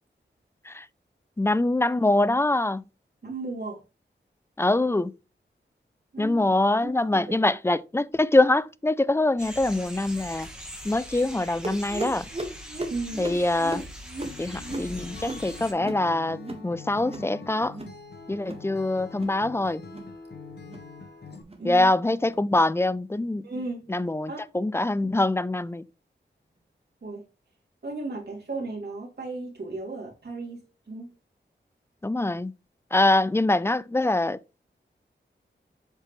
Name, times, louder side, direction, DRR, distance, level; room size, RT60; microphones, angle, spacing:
voice 1, 1.4-2.9 4.6-5.1 6.2-10.5 10.8-12.3 13.2-13.8 14.4-17.8 18.3-19.8 21.6-23.5 23.9-25.8 32.0-32.5 32.9-34.4, left 2 dB, 15° left, 0.4 m, -24 dB
voice 2, 3.2-3.8 6.1-6.4 6.8-7.5 12.9-13.3 21.6-21.9 23.4-23.9 24.3-24.4 27.0-27.3 27.8-30.6 30.9-31.1, right 3 dB, 60° right, 2.7 m, -35 dB
sound 1, 9.4-15.7, equal, 5° right, 1.8 m, -41 dB
sound 2, 11.6-16.7 16.9-17.3 17.6-18.0 18.3-18.7 19.1-19.4 19.8-20.1 20.6-20.9 21.4-21.7 22.2-22.4 23.1-23.2 23.9-24.0 24.8-24.9, right 2 dB, 30° right, 1.6 m, -37 dB
Acoustic guitar, 14.2-21.4, left 5 dB, 60° left, 1.5 m, -44 dB
7.4 x 5.0 x 3.1 m
wide cardioid pair, 65°, 19 cm